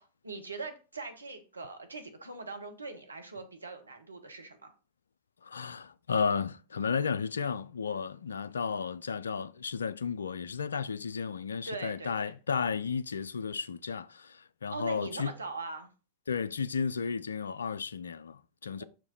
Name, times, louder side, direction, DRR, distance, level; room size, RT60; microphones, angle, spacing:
voice 1, 0.0-4.7 11.6-12.3 14.7-15.9 18.8-18.9, right 3 dB, 80° right, 1.1 m, -41 dB
voice 2, 5.4-15.3 16.3-18.8, left 5 dB, 70° left, 0.3 m, -33 dB
5.9 x 4.8 x 4.1 m
figure-of-eight pair, 90°, 0 cm